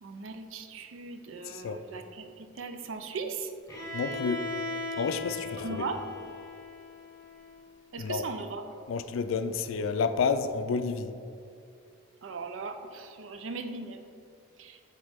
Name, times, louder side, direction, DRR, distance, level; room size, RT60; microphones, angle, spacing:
voice 1, 0.0-3.5 5.6-6.0 7.9-8.7 12.2-14.0 14.6-14.8, right 4 dB, 75° right, 7 dB, 0.5 m, -38 dB
voice 2, 1.5-1.8 3.9-4.4 5.0-5.9 8.0-8.3 8.9-11.1, left 5 dB, 80° left, 10 dB, 0.3 m, -30 dB
Bowed string instrument, 3.7-7.6, left 2 dB, 15° left, 1.2 m, -38 dB
7.1 x 4.3 x 3.5 m, 2.5 s
head